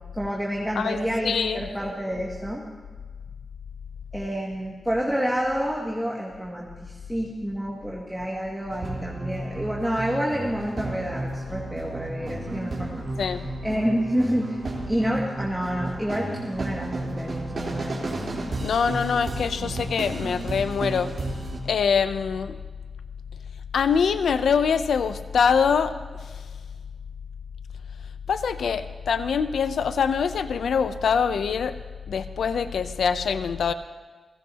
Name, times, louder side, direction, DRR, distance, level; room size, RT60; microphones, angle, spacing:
voice 1, 0.1-2.6 4.1-13.0 13.3-14.6 14.9-18.2 19.6-19.8, equal, 5° right, -3 dB, 2.1 m, -28 dB
voice 2, 0.7-1.7 13.2-13.5 18.6-21.1 21.7-22.6 23.7-25.9 28.3-31.7 32.1-33.7, left 6 dB, 85° left, 11 dB, 0.6 m, -24 dB
sound 1, 8.7-21.6, right 2 dB, 65° right, 3.7 m, -33 dB
30.0 x 15.5 x 2.9 m, 1.4 s
cardioid pair, 70°, 0 cm